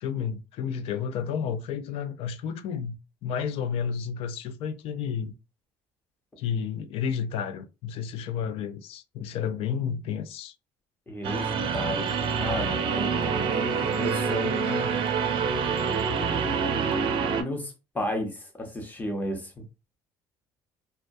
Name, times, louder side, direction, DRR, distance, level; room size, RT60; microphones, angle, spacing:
voice 1, 0.0-2.9 3.2-5.3 6.4-10.6, left 7 dB, 65° left, 0.4 m, -31 dB
voice 2, 11.1-12.1 12.4-13.1 13.5-14.9 17.4-19.5, left 1 dB, 15° left, 0.8 m, -33 dB
sound 1, 11.2-17.4, right 6 dB, 55° right, 0.5 m, -26 dB
2.2 x 2.1 x 2.6 m
cardioid pair, 110°, 10 cm